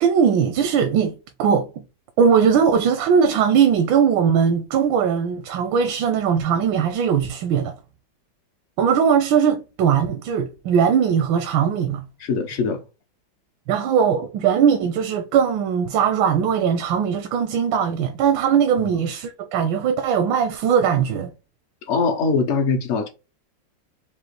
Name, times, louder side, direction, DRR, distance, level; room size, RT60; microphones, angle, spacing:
voice 1, 0.0-1.8 2.2-7.8 8.8-12.1 13.7-21.3, right 7 dB, 85° right, 1.3 m, -20 dB
voice 2, 12.2-12.8 21.9-23.1, left 4 dB, 65° left, 0.7 m, -22 dB
5.1 x 2.5 x 3.1 m
omnidirectional pair, 2.1 m